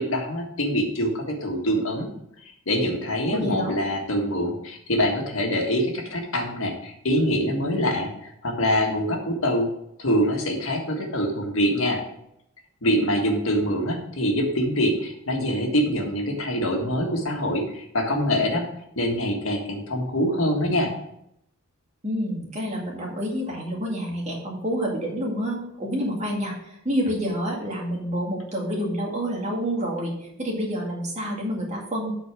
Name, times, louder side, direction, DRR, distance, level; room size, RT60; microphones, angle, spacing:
voice 1, 0.0-2.1 2.4-9.7 10.0-12.0 12.8-18.6 18.9-20.9, equal, 70° left, 1 dB, 1.7 m, -24 dB
voice 2, 3.3-3.7 22.0-26.5 26.8-30.1 30.4-32.1, equal, 35° right, -2 dB, 2.1 m, -28 dB
8.1 x 4.5 x 6.0 m, 0.77 s
head